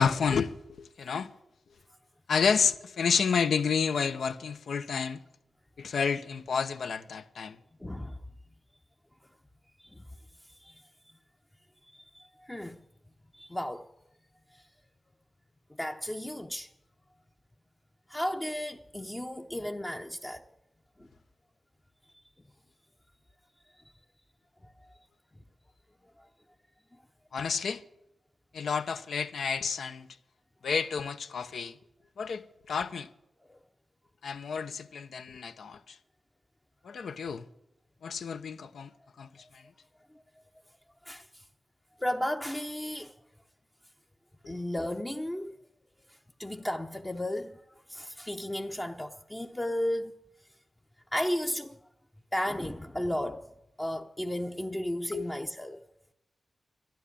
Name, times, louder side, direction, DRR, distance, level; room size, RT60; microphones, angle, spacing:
voice 1, 0.0-1.3 2.3-5.2 5.8-7.6 27.3-27.8 28.5-30.1 30.6-31.8 32.2-33.1 34.2-36.0 36.8-37.5 38.0-38.9 39.2-39.6 44.4-44.6 55.1-55.3, left 6 dB, 85° left, 0.8 m, -30 dB
voice 2, 7.8-8.1 11.9-12.2 12.5-12.8 13.4-13.8 15.8-16.7 18.1-20.4 41.1-41.2 42.0-43.1 44.5-45.6 46.4-47.5 47.9-50.1 51.1-51.8 52.3-53.4 53.8-55.8, left 1 dB, 10° left, 0.6 m, -33 dB
12.5 x 11.5 x 8.5 m
wide cardioid pair, 125°, 0 cm